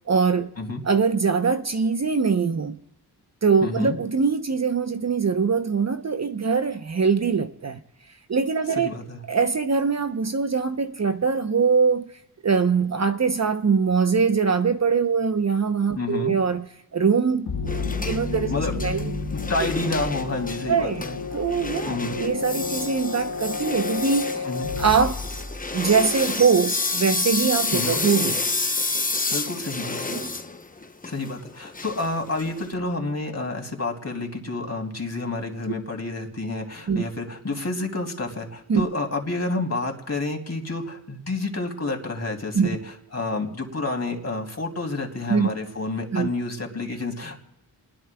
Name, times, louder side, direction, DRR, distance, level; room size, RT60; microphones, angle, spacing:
voice 1, 0.1-0.5 0.8-2.8 3.4-7.8 8.3-8.9 9.3-12.0 12.4-16.7 16.9-18.5 18.8-19.0 20.7-21.0 21.3-24.4 24.8-25.2 25.7-28.4 30.1-30.3 36.9-37.0 38.7-38.9 42.5-42.7 45.3-45.5 46.1-46.3, right 5 dB, 40° right, 0.8 m, -22 dB
voice 2, 3.6-4.0 8.7-9.2 15.9-16.4 18.5-21.2 21.9-22.2 24.4-24.7 27.7-27.9 29.3-30.1 31.1-47.4, left 2 dB, 35° left, 2.9 m, -29 dB
sound 1, 17.5-26.1, left 4 dB, 60° left, 1.6 m, -31 dB
sound 2, 17.7-32.7, left 3 dB, 20° left, 0.9 m, -30 dB
29.0 x 20.5 x 2.3 m
cardioid pair, 60°, 42 cm